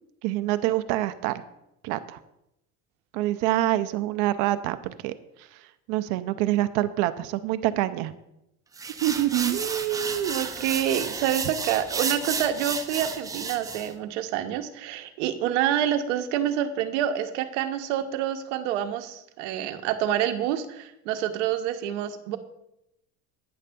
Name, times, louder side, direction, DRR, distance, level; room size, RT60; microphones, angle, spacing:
voice 1, 0.2-1.4 1.8-2.2 3.1-5.1 5.5-5.6 5.9-8.1 9.0-9.6, right 15 dB, 60° right, 11 dB, 0.5 m, -26 dB
sound 1, 8.8-13.9, right 5 dB, 10° right, 0.4 m, -32 dB
voice 2, 9.5-22.4, right 10 dB, 85° right, 8 dB, 0.8 m, -27 dB
9.5 x 3.3 x 6.7 m, 0.84 s
cardioid pair, 140°, 35 cm